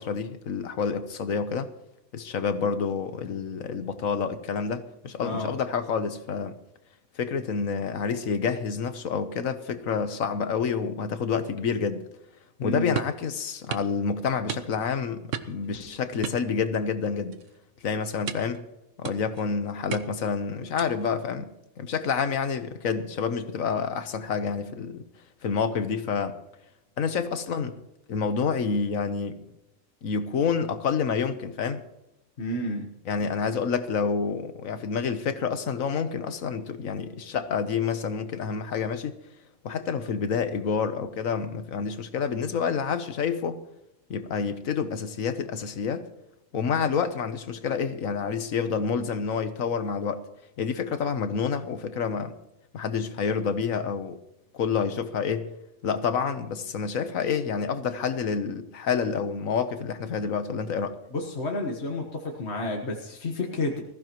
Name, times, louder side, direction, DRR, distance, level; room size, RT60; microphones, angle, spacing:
voice 1, 0.0-1.7 2.1-6.6 7.2-12.0 12.6-17.4 17.8-18.6 19.0-21.5 21.8-25.0 25.4-26.4 27.0-27.8 28.1-29.4 30.0-31.8 33.0-39.1 39.6-43.6 44.1-46.1 46.5-50.2 50.6-52.3 52.7-54.2 54.5-55.5 55.8-60.9, left 6 dB, 70° left, 1.4 m, -28 dB
voice 2, 5.2-5.5 12.6-12.9 32.4-32.9 61.1-63.8, left 2 dB, 50° left, 1.7 m, -31 dB
sound 1, 13.0-13.2 13.7-13.9 14.5-14.9 15.3-15.7 16.2-17.0 17.3-17.6 18.3-18.6 19.0-19.4 19.9-20.3 20.8-21.1, right 8 dB, 65° right, 1.1 m, -35 dB
20.5 x 14.5 x 3.0 m
omnidirectional pair, 1.5 m